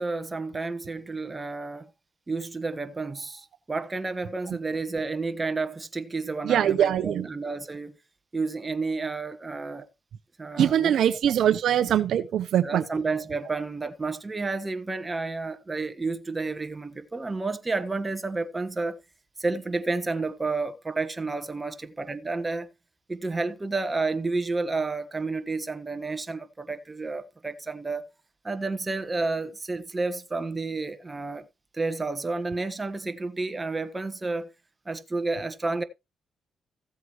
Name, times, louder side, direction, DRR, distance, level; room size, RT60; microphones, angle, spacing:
voice 1, 0.0-1.9 2.3-8.0 8.3-9.8 10.4-10.9 12.6-19.0 19.4-22.7 23.1-28.0 28.4-31.4 31.7-34.5 34.8-35.8, right 3 dB, 20° right, 1.4 m, -30 dB
voice 2, 6.4-7.3 10.6-12.8, right 10 dB, 75° right, 0.8 m, -22 dB
15.0 x 7.9 x 3.1 m
cardioid pair, 90°, 0 cm